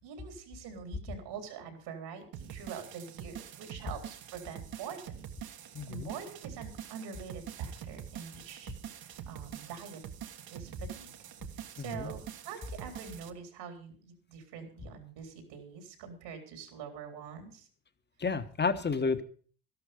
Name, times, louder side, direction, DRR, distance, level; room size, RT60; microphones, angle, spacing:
voice 1, 0.0-5.2 5.5-10.0 10.5-11.1 11.5-17.7, right 6 dB, 75° right, 5 dB, 3.7 m, -45 dB
sound 1, 2.3-13.3, right 9 dB, 55° right, 1.4 m, -45 dB
voice 2, 5.7-6.1 11.8-12.1 18.2-19.2, left 4 dB, 25° left, 11 dB, 1.3 m, -31 dB
12.5 x 12.0 x 5.1 m, 0.43 s
supercardioid pair, 80°, 43 cm